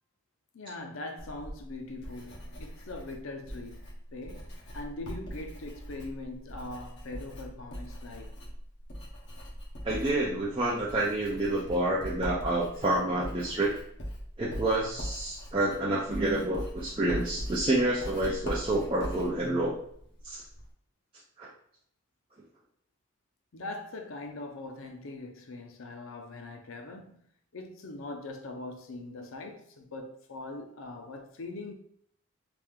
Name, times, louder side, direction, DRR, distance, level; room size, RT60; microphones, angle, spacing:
voice 1, 0.5-8.4 23.5-27.2 27.5-31.7, left 2 dB, 75° left, 0.6 m, -42 dB
Writing, 1.2-20.7, equal, 55° left, 1.0 m, -41 dB
voice 2, 9.8-13.7 14.4-19.7 20.2-20.4 21.4-21.5, right 1 dB, 25° right, 0.5 m, -28 dB
3.4 x 2.7 x 3.5 m
head